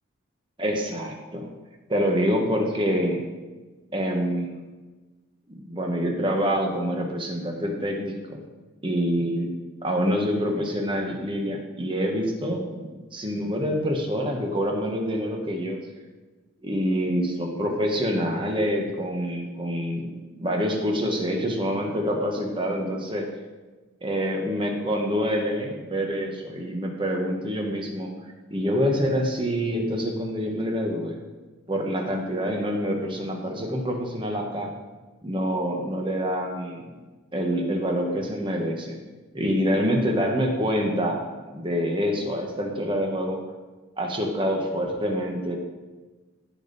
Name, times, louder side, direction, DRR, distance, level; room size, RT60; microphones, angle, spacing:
voice 1, 0.6-1.5 1.9-3.2 3.9-4.5 5.6-8.4 8.8-9.5 9.8-12.8 13.1-15.8 16.6-23.2 24.0-28.1 28.5-31.2 31.7-34.7 35.2-36.9 37.3-39.0 39.3-41.2 41.5-43.4 44.0-45.6, equal, 25° right, 1 dB, 1.3 m, -26 dB
16.0 x 5.4 x 4.1 m, 1.3 s
head